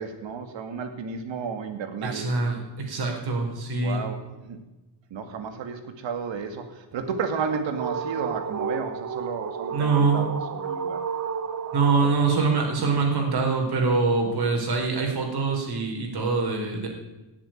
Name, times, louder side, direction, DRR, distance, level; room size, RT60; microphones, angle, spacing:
voice 1, 0.0-2.3 3.8-4.6 5.1-11.1 12.0-12.1 12.9-13.0, right 5 dB, 80° right, 7 dB, 2.3 m, -32 dB
voice 2, 2.0-4.0 9.7-10.2 11.7-16.9, right 4 dB, 55° right, 2 dB, 4.4 m, -24 dB
sound 1, 6.9-13.0, right 6 dB, 40° right, 1.0 m, -32 dB
17.0 x 7.8 x 9.2 m, 1.0 s
wide cardioid pair, 155°, 44 cm